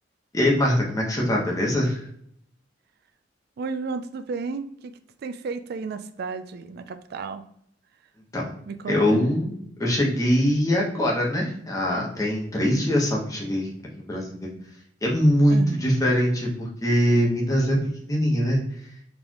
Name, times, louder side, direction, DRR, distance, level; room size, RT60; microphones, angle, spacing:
voice 1, 0.3-2.0 8.3-8.5 8.9-13.7 14.0-14.5 15.0-17.8 18.0-18.6, equal, 20° left, -2 dB, 1.1 m, -22 dB
voice 2, 3.6-7.4 8.7-9.2 15.5-15.8, right 4 dB, 55° right, 10 dB, 0.3 m, -33 dB
4.3 x 3.3 x 2.9 m, 0.69 s
head